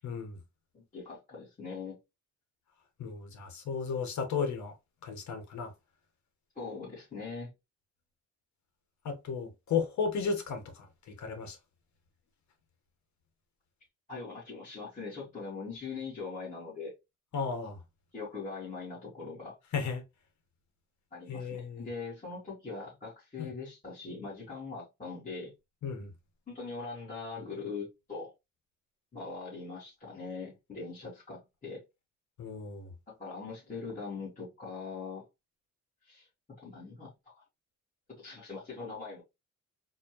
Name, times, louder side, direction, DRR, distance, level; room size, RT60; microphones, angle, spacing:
voice 1, 0.0-0.4 3.0-4.7 5.0-5.7 9.0-11.6 17.3-17.8 19.7-20.0 21.3-21.9 23.4-23.5 25.8-26.1 32.4-32.9, left 5 dB, 70° left, 1.4 m, -34 dB
voice 2, 0.7-2.0 6.5-7.5 14.1-16.9 18.1-19.6 21.1-25.5 26.5-28.3 29.1-31.8 33.1-35.2 36.0-36.3 36.6-37.3 38.1-39.2, left 4 dB, 25° left, 2.6 m, -41 dB
4.1 x 2.8 x 3.0 m
cardioid pair, 90°, 30 cm